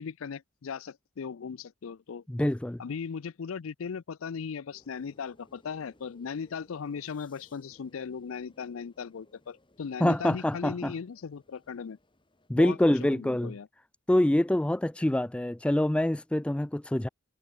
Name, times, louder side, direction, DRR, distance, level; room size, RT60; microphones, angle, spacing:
voice 1, 0.0-2.2 2.8-12.0 12.6-13.7, left 6 dB, 80° left, 0.5 m, -38 dB
voice 2, 2.3-2.8 10.0-10.9 12.5-13.5 14.1-17.1, left 1 dB, 5° left, 0.3 m, -25 dB
sound 1, 4.7-12.5, left 1 dB, 25° left, 3.4 m, -63 dB
head